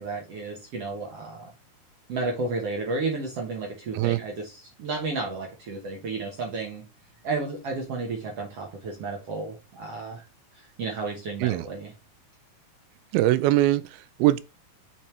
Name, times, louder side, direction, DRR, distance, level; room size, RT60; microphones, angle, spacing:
voice 1, 0.0-1.5 2.1-6.8 7.2-10.2 10.5-11.9, right 3 dB, 60° right, 1.6 m, -32 dB
voice 2, 13.1-14.4, right 15 dB, 85° right, 2.5 m, -22 dB
7.2 x 6.0 x 3.2 m
omnidirectional pair, 4.5 m